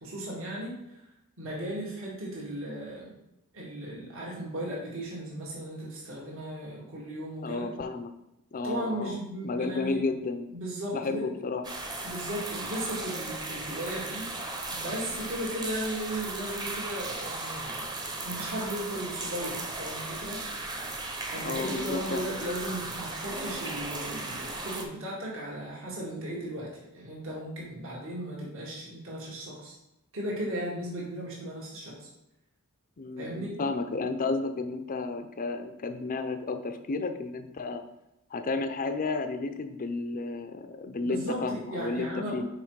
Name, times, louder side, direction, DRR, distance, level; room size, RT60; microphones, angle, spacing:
voice 1, 0.0-1.0 1.4-3.2 3.5-7.7 8.6-10.0 10.5-11.3 12.0-14.2 14.7-20.4 21.3-29.8 30.1-32.1 33.2-33.6 41.0-42.4, right 1 dB, 60° right, -5 dB, 1.6 m, -36 dB
voice 2, 7.4-8.1 8.5-9.2 9.4-10.5 10.9-11.6 21.4-22.2 33.0-37.8 38.3-42.5, left 3 dB, 40° left, 8 dB, 0.5 m, -32 dB
sound 1, 11.6-24.8, right 2 dB, 20° right, 0.8 m, -36 dB
5.7 x 4.5 x 4.6 m, 0.88 s
head